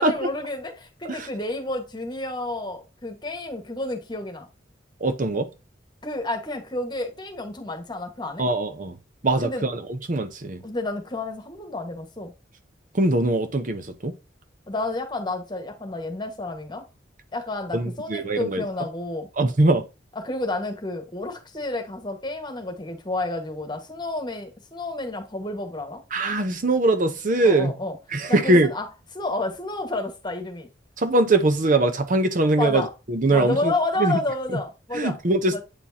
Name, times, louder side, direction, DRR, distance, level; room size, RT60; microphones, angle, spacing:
voice 1, 0.0-4.5 6.0-8.4 9.4-9.7 10.6-12.3 14.7-16.9 17.3-19.3 20.1-26.0 27.4-28.0 28.3-28.9 29.1-30.7 32.6-32.9 33.3-35.2 35.5-35.6, left 2 dB, 25° left, 1.4 m, -30 dB
voice 2, 5.0-5.5 8.4-8.9 9.2-10.6 12.9-14.1 17.7-18.6 19.4-19.8 26.1-27.7 28.1-28.7 31.0-33.7 34.0-34.2 34.9-35.6, right 2 dB, 45° right, 0.8 m, -22 dB
8.9 x 4.5 x 2.7 m
head